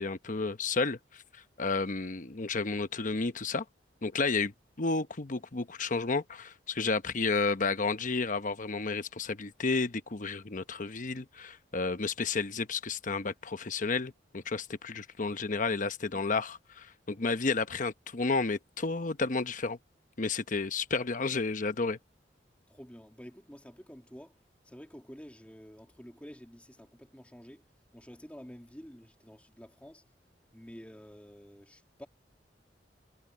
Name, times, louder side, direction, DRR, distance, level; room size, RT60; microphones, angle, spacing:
voice 1, 0.0-3.6 4.0-4.5 4.8-19.8 20.2-22.0, left 4 dB, 45° left, 0.9 m, -31 dB
voice 2, 22.7-24.4 24.6-30.1 30.5-32.1, equal, 5° left, 2.4 m, -50 dB
head